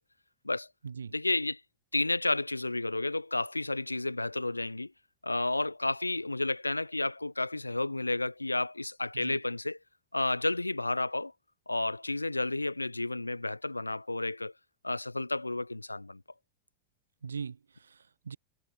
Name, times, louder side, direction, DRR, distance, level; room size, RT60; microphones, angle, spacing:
voice 1, 1.1-1.6 1.9-4.9 5.2-9.8 10.1-11.3 11.7-14.5 14.8-16.2, left 2 dB, 85° left, 4.7 m, -31 dB
voice 2, 17.2-18.4, right 6 dB, 75° right, 5.3 m, -41 dB
figure-of-eight pair, 90°, 0 cm